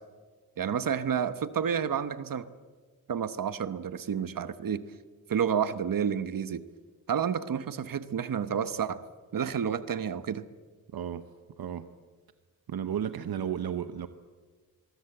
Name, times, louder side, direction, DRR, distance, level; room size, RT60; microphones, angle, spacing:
voice 1, 0.6-2.5 3.1-4.8 5.3-6.6 7.1-9.0 9.3-10.4, right 8 dB, 65° right, 13 dB, 1.0 m, -30 dB
voice 2, 10.9-11.3 11.6-11.9 12.7-14.1, right 9 dB, 90° right, 10 dB, 1.0 m, -33 dB
25.0 x 22.5 x 7.9 m, 1.5 s
wide cardioid pair, 130°, 36 cm